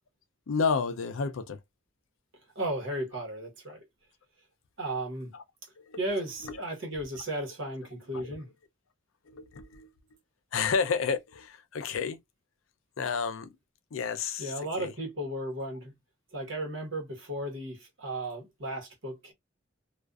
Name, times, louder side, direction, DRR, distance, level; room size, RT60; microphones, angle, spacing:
voice 1, 0.5-1.6 5.3-5.4 5.8-6.0 6.4-6.6 6.9-7.0 8.1-8.4 9.3-9.9 10.5-12.2 13.0-13.5 13.9-14.9, left 5 dB, 85° left, 0.5 m, -31 dB
voice 2, 2.5-3.9 4.8-5.3 6.0-8.5 14.4-16.0 16.3-19.3, right 1 dB, 70° right, 1.1 m, -35 dB
2.5 x 2.3 x 2.3 m
head